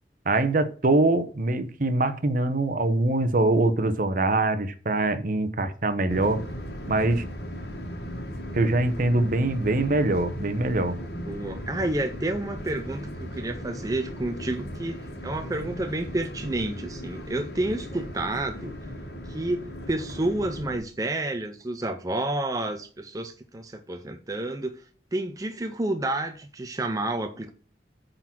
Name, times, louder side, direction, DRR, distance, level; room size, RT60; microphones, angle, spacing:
voice 1, 0.2-6.5 6.9-7.3 8.5-11.0, right 2 dB, 50° right, 0.9 m, -23 dB
sound 1, 6.1-20.8, equal, 65° left, 1.7 m, -37 dB
voice 2, 11.3-18.7 19.3-24.8 25.1-27.5, right 2 dB, 20° right, 0.5 m, -30 dB
8.9 x 3.9 x 5.9 m
head